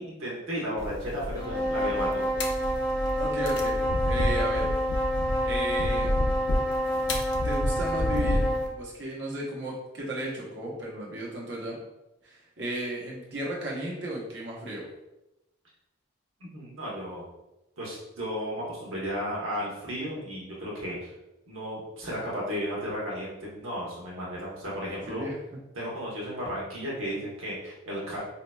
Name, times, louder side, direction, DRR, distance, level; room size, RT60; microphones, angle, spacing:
voice 1, 0.0-2.2 16.5-17.2 17.8-21.1 21.5-25.3 25.7-28.2, equal, 85° right, -5 dB, 1.0 m, -34 dB
sound 1, 0.8-8.7, left 1 dB, 60° left, 0.5 m, -30 dB
sound 2, 1.3-8.7, equal, 10° right, 1.1 m, -28 dB
voice 2, 3.2-4.7 5.4-6.2 7.4-11.8 12.2-14.9 24.9-25.4, right 1 dB, 60° right, -4 dB, 0.8 m, -34 dB
4.2 x 2.8 x 2.2 m, 0.93 s
head